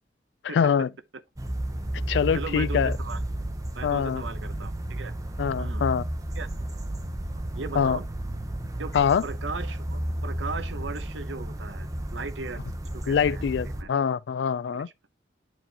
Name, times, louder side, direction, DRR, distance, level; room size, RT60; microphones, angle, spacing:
voice 1, 0.5-0.9 2.1-2.9 3.8-4.2 5.4-6.0 7.8-8.0 8.9-9.2 13.1-14.9, left 7 dB, 70° left, 0.3 m, -24 dB
sound 1, 1.4-13.8, right 1 dB, 20° right, 0.6 m, -32 dB
voice 2, 2.3-3.2 3.7-5.1 5.6-5.8 6.4-6.5 7.5-8.0 8.8-8.9 9.2-12.6 12.9-13.4 13.8-13.9 14.7-14.8, right 4 dB, 80° right, 0.8 m, -37 dB
10.5 x 4.5 x 2.8 m
head